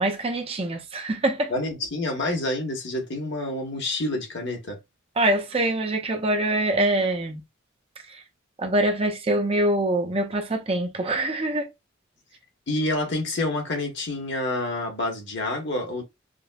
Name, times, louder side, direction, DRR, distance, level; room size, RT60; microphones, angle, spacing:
voice 1, 0.0-1.5 5.2-7.4 8.1-8.2 8.6-11.7, right 1 dB, 30° right, 0.6 m, -24 dB
voice 2, 1.5-4.8 12.7-16.0, left 2 dB, 55° left, 1.1 m, -28 dB
5.1 x 2.1 x 2.3 m
head